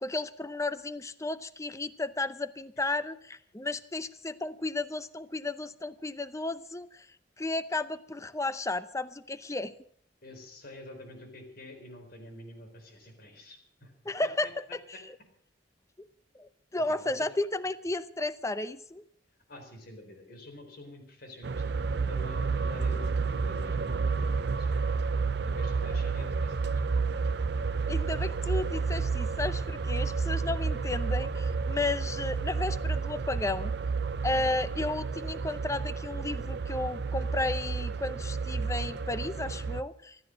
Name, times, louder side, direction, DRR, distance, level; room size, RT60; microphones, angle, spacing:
voice 1, 0.0-7.1 7.4-9.7 14.1-14.6 16.3-19.0 27.9-33.7 34.2-40.2, left 2 dB, 15° left, 14 dB, 0.7 m, -33 dB
voice 2, 10.2-13.9 14.2-14.5 16.9-17.3 19.5-23.1 23.4-24.9 25.4-26.7 34.3-34.5, left 1 dB, 55° left, 5 dB, 4.0 m, -48 dB
sound 1, 21.4-39.8, right 4 dB, 65° right, 0.6 m, -30 dB
15.0 x 12.5 x 6.4 m, 0.65 s
head